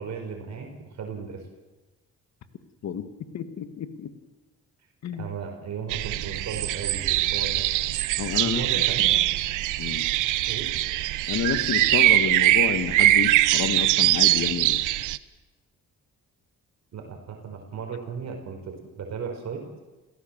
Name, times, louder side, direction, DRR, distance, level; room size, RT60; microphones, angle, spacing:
voice 1, 0.0-1.4 5.1-7.6 8.4-9.4 10.5-10.7 16.9-19.6, right 6 dB, 60° right, 3 dB, 4.4 m, -36 dB
voice 2, 3.3-4.1 5.0-5.3 8.2-9.1 9.8-10.1 11.3-14.8, left 8 dB, 65° left, 10 dB, 1.9 m, -30 dB
sound 1, 5.9-15.2, right 15 dB, 90° right, 0.8 m, -22 dB
29.0 x 16.5 x 7.4 m, 1.1 s
cardioid pair, 90°, 30 cm